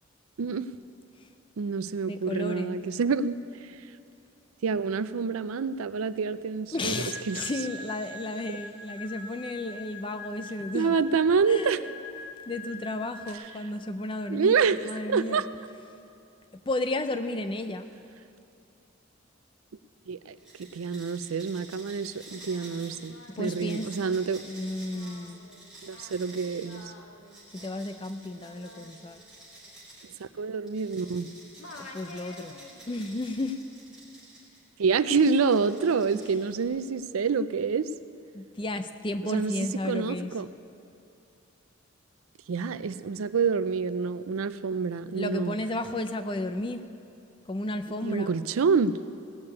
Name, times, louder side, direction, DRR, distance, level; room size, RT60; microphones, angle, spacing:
voice 1, 0.4-0.7 1.6-3.4 4.6-7.4 10.7-11.8 14.3-14.8 15.1-15.4 20.1-24.4 25.8-26.9 30.2-31.3 34.8-37.9 39.2-40.5 42.5-45.6 48.0-49.0, right 5 dB, 85° right, 14 dB, 0.5 m, -27 dB
voice 2, 2.1-2.8 6.7-11.0 11.5-11.9 12.5-14.6 14.8-15.4 16.5-17.9 23.3-23.9 24.4-25.5 27.5-29.2 31.7-32.6 32.9-33.6 36.1-36.3 38.3-40.3 45.1-46.8 47.5-48.3, left 2 dB, 25° left, 9 dB, 0.5 m, -33 dB
sound 1, 6.9-13.3, left 2 dB, 50° right, 2.3 m, -43 dB
sound 2, 20.4-30.1 30.7-34.6 35.0-36.8, right 2 dB, 5° right, 4.3 m, -50 dB
Singing, 22.2-31.3 31.6-33.0, left 2 dB, 80° left, 1.5 m, -51 dB
17.0 x 6.8 x 8.4 m, 2.6 s
head